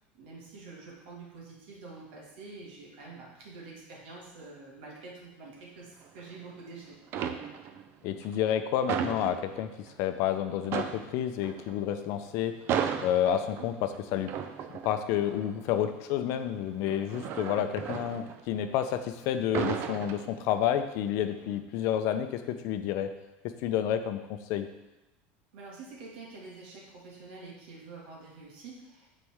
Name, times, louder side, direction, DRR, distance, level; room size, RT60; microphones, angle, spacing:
voice 1, 0.1-7.0 25.5-29.1, right 3 dB, 80° right, -3 dB, 2.1 m, -47 dB
sound 1, 6.0-6.7 7.0-7.9 8.2-10.0 10.3-10.4 10.6-19.0 19.3-20.8 21.2-21.5, right 8 dB, 50° right, 0.5 m, -35 dB
voice 2, 8.0-12.5 13.0-14.3 14.8-23.1 23.4-24.7, left 10 dB, 60° left, 9 dB, 0.6 m, -30 dB
7.9 x 4.2 x 3.6 m, 0.96 s
supercardioid pair, 125°, 6 cm